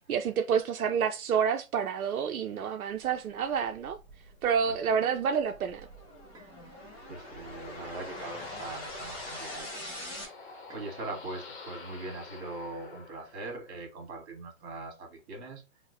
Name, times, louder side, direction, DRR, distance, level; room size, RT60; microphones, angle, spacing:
voice 1, 0.0-4.0 4.4-5.9, right 7 dB, 85° right, 0.6 m, -28 dB
sound 1, 3.3-10.2, left 1 dB, 10° left, 1.2 m, -45 dB
sound 2, 4.9-5.1 6.3-6.6 7.8-8.0 9.3-9.6 10.7-10.9, right 3 dB, 10° right, 0.6 m, -56 dB
sound 3, 6.3-13.9, left 4 dB, 35° left, 0.8 m, -46 dB
voice 2, 6.6-9.9 10.4-15.6, right 2 dB, 50° right, 1.7 m, -41 dB
5.1 x 2.1 x 2.5 m
hypercardioid pair, 140°, 42 cm